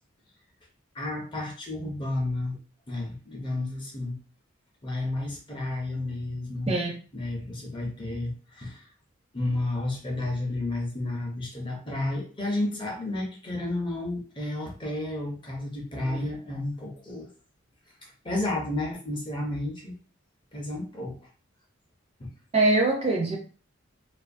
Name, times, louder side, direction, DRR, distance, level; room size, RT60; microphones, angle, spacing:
voice 1, 0.9-2.6 2.9-4.2 4.8-6.7 7.1-8.8 9.3-17.3 18.0-19.9 20.5-21.3 22.2-22.3, left 2 dB, 25° left, 0 dB, 0.5 m, -32 dB
voice 2, 22.5-23.4, right 2 dB, 30° right, 1 dB, 0.4 m, -23 dB
2.3 x 2.3 x 2.5 m, 0.38 s
head